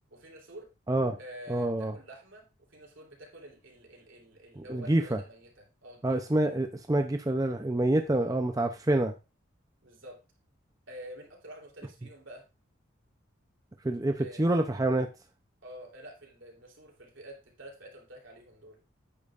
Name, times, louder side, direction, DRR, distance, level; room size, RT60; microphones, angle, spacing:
voice 1, 0.1-0.7 1.2-6.2 8.1-8.3 9.8-10.2 10.9-12.4 14.2-14.4 15.6-18.8, equal, 70° right, 0 dB, 3.2 m, -48 dB
voice 2, 1.5-2.0 4.6-5.2 6.0-9.1 13.8-15.1, right 1 dB, 15° right, 5 dB, 0.5 m, -27 dB
10.5 x 8.7 x 2.4 m, 0.28 s
head